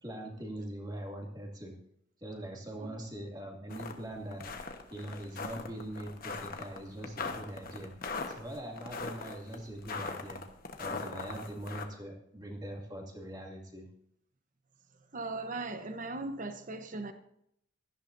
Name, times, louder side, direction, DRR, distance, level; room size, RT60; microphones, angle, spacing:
voice 1, 0.0-1.8 2.2-4.5 4.9-8.0 8.3-10.4 10.8-13.9, right 1 dB, 20° right, 0 dB, 2.5 m, -42 dB
sound 1, 3.7-3.9 4.3-11.8, left 4 dB, 45° left, 1.3 m, -40 dB
voice 2, 15.1-17.1, right 2 dB, 40° right, 8 dB, 1.0 m, -38 dB
17.0 x 14.0 x 2.7 m, 0.72 s
head